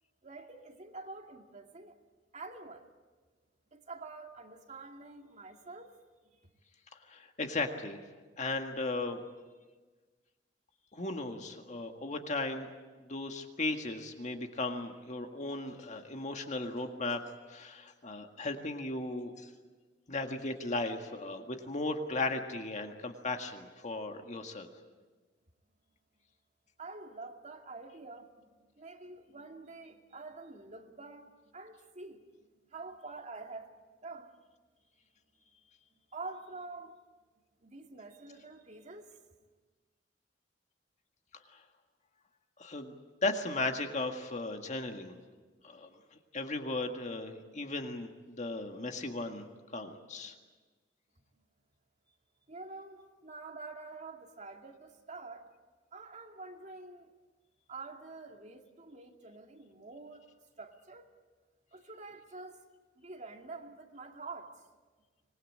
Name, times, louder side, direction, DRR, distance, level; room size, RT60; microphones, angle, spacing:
voice 1, 0.2-1.9 2.3-2.8 3.7-6.0 26.8-32.3 32.7-33.8 34.0-34.3 36.1-37.0 37.6-39.1 52.5-55.4 55.9-57.2 57.7-60.3 60.6-61.1 61.7-62.6 63.0-64.5, right 3 dB, 40° right, 3 dB, 2.3 m, -47 dB
voice 2, 7.1-8.0 8.4-9.2 10.9-12.7 13.0-17.2 17.5-19.5 20.1-24.7 41.5-41.6 42.6-42.9 43.2-45.1 45.6-49.4 49.7-50.4, left 2 dB, 40° left, 4 dB, 1.8 m, -36 dB
25.5 x 20.5 x 8.7 m, 1.3 s
head